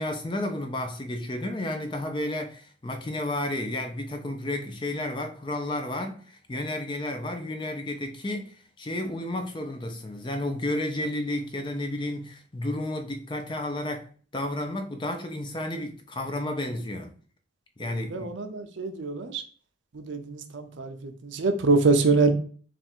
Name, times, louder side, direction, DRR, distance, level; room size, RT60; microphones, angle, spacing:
voice 1, 0.0-17.1 17.8-18.3, left 1 dB, 25° left, 0.5 m, -32 dB
voice 2, 17.8-19.4 19.9-22.3, right 3 dB, 75° right, 0.5 m, -25 dB
3.5 x 2.4 x 4.2 m
head